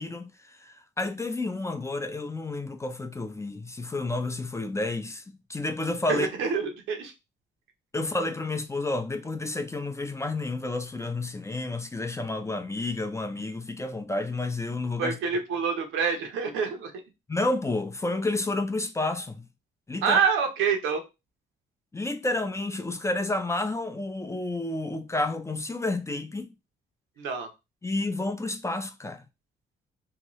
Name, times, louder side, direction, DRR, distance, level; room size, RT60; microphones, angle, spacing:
voice 1, 0.0-6.3 7.9-15.1 17.3-19.4 19.9-20.2 21.9-26.5 27.8-29.2, left 2 dB, 15° left, 0.4 m, -30 dB
voice 2, 6.1-7.1 15.0-16.9 20.0-21.0 27.2-27.5, right 6 dB, 85° right, 0.7 m, -26 dB
2.8 x 2.2 x 2.9 m
cardioid pair, 90°, 20 cm